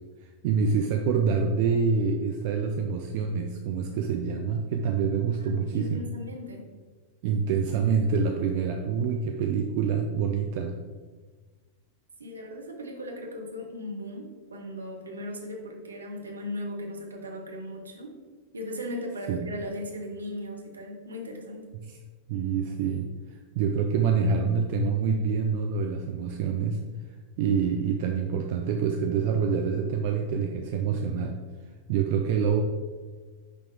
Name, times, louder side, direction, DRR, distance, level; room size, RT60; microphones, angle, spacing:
voice 1, 0.2-6.1 7.2-10.8 19.3-19.5 21.7-21.9 22.3-26.8 27.4-31.4 31.9-32.6, right 6 dB, 50° right, 3 dB, 0.4 m, -26 dB
voice 2, 5.4-6.7 12.2-18.2 18.5-21.7, left 1 dB, 75° right, 1 dB, 0.9 m, -37 dB
5.9 x 4.8 x 3.4 m, 1.4 s
figure-of-eight pair, 90°, 0 cm